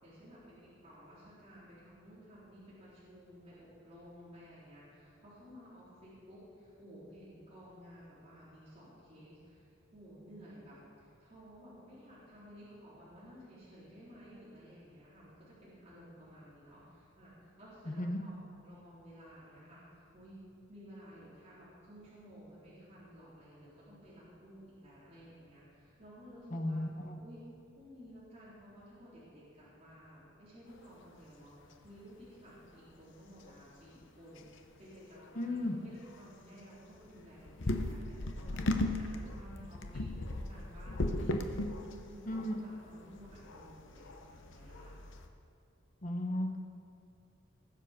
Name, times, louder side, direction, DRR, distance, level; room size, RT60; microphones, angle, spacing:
voice 1, 0.0-18.3 18.6-20.4 20.7-26.8 27.2-27.4 27.7-34.5 34.8-41.4 41.8-45.0, equal, 30° right, -10 dB, 3.8 m, -54 dB
voice 2, 26.5-27.1 35.3-35.8 42.2-42.5 46.0-46.6, left 1 dB, 40° left, 4 dB, 1.1 m, -35 dB
sound 1, 30.7-31.1 31.4-31.5 31.7-32.0 32.6-32.7 33.4-33.5 34.0-34.1 34.4-34.7 35.1-35.3 35.7-35.8 36.1-36.2 36.9-45.3, left 1 dB, 60° left, 0.8 m, -37 dB
19.5 x 7.5 x 5.2 m, 2.5 s
head